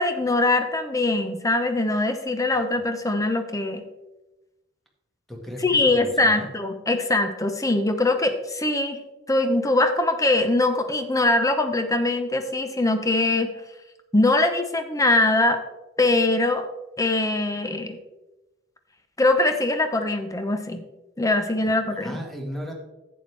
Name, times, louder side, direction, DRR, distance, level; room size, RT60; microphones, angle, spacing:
voice 1, 0.0-3.8 5.6-9.0 9.3-13.5 14.1-15.6 16.0-16.7 17.0-18.0 19.2-20.8 21.2-22.2, left 2 dB, 15° left, 7 dB, 0.9 m, -22 dB
voice 2, 5.3-6.6 21.6-22.7, equal, ahead, 0 dB, 1.6 m, -37 dB
11.0 x 8.6 x 3.4 m, 1.0 s
head